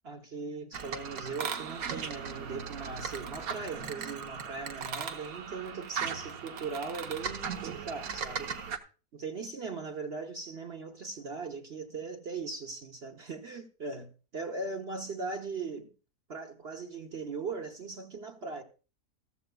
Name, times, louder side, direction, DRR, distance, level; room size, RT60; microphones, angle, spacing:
voice 1, 0.0-8.5 9.1-15.9 16.3-18.6, right 4 dB, 45° right, 1.1 m, -39 dB
sound 1, 0.7-8.8, right 6 dB, 65° right, 1.4 m, -38 dB
14.5 x 14.0 x 2.3 m
omnidirectional pair, 1.7 m